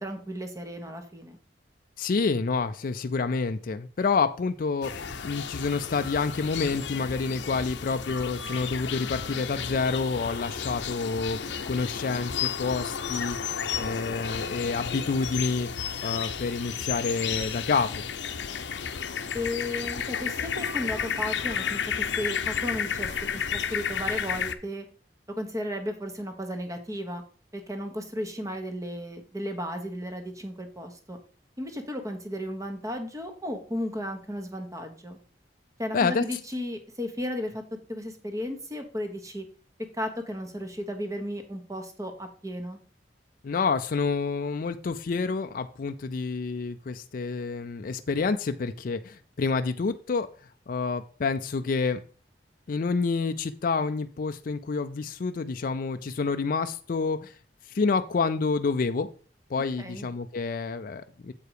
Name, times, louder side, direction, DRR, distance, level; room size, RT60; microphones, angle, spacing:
voice 1, 0.0-1.4 19.3-24.8 25.3-27.2 27.5-31.2 31.6-35.2 35.8-37.6 37.9-39.4 39.9-42.8 59.8-60.1, equal, 20° right, 6 dB, 1.2 m, -34 dB
voice 2, 2.0-18.0 35.9-36.2 43.4-50.3 50.7-52.0 52.7-57.3 57.7-59.1 59.5-61.3, left 4 dB, 55° left, 8 dB, 0.4 m, -28 dB
sound 1, 4.8-24.5, left 7 dB, 90° left, 0.7 m, -32 dB
7.8 x 4.8 x 4.9 m, 0.40 s
head